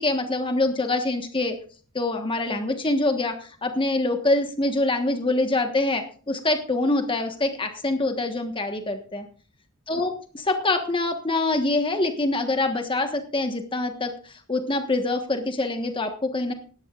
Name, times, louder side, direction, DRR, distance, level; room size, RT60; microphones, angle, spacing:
voice 1, 0.0-1.6 1.9-9.3 9.9-16.5, left 2 dB, 25° left, 5 dB, 1.4 m, -25 dB
19.0 x 13.5 x 2.5 m, 0.42 s
head